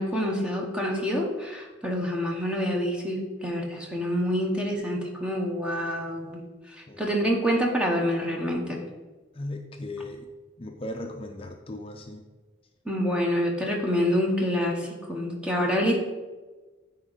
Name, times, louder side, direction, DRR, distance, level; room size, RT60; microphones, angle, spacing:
voice 1, 0.0-6.4 7.0-8.8 12.9-16.0, equal, 5° right, -1 dB, 0.9 m, -27 dB
voice 2, 9.3-10.3 10.6-12.2, left 1 dB, 30° left, 3 dB, 0.5 m, -37 dB
9.7 x 4.4 x 4.0 m, 1.3 s
head